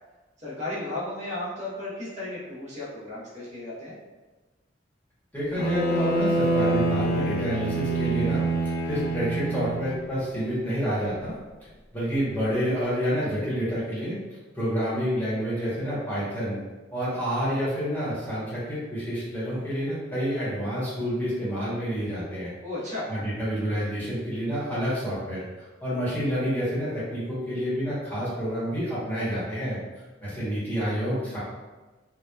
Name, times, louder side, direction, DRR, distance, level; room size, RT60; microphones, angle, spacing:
voice 1, 0.4-3.9 22.6-23.1, left 2 dB, 40° right, -8 dB, 0.8 m, -34 dB
voice 2, 5.3-11.3 11.9-14.2 14.5-16.6 16.9-22.5 23.1-29.8 30.2-31.4, equal, 10° left, -10 dB, 0.9 m, -28 dB
Bowed string instrument, 5.6-10.0, right 2 dB, 55° left, 0.4 m, -26 dB
2.8 x 2.0 x 2.2 m, 1.2 s
head